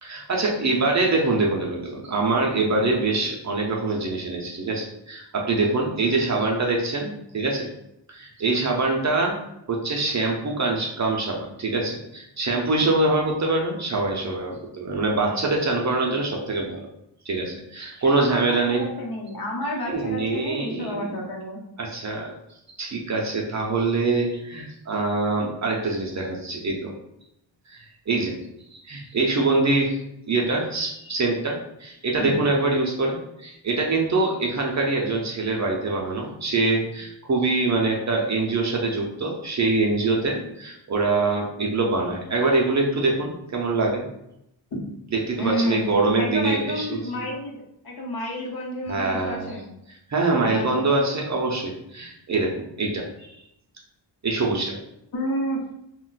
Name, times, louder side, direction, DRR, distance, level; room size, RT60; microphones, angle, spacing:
voice 1, 0.0-7.7 8.1-9.4 9.7-16.8 17.3-18.9 19.9-21.1 21.8-22.3 22.8-26.9 27.7-28.3 28.7-30.0 30.3-44.1 45.1-47.3 48.9-49.5 50.1-53.3 54.2-54.8, right 3 dB, 40° right, -1 dB, 0.4 m, -24 dB
voice 2, 18.0-21.6 32.2-32.3 45.4-47.6 47.8-49.7 50.3-50.8 55.1-55.6, equal, 55° left, -2 dB, 0.8 m, -30 dB
2.3 x 2.2 x 3.8 m, 0.81 s
wide cardioid pair, 155°, 45 cm